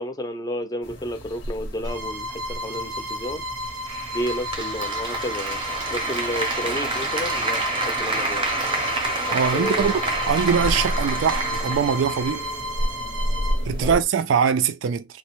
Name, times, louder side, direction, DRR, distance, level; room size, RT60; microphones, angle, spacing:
voice 1, 0.0-3.4 4.1-5.6 5.9-8.4 9.5-10.0 13.8-14.0, left 1 dB, 20° left, 0.5 m, -31 dB
sound 1, 0.8-14.0, equal, 75° left, 0.7 m, -33 dB
Bowed string instrument, 1.8-13.6, equal, 90° right, 0.7 m, -33 dB
Applause, 3.9-12.9, right 2 dB, 25° right, 0.6 m, -28 dB
voice 2, 9.3-9.9 10.3-12.5 13.7-15.2, right 7 dB, 70° right, 0.3 m, -22 dB
3.0 x 2.0 x 3.0 m
head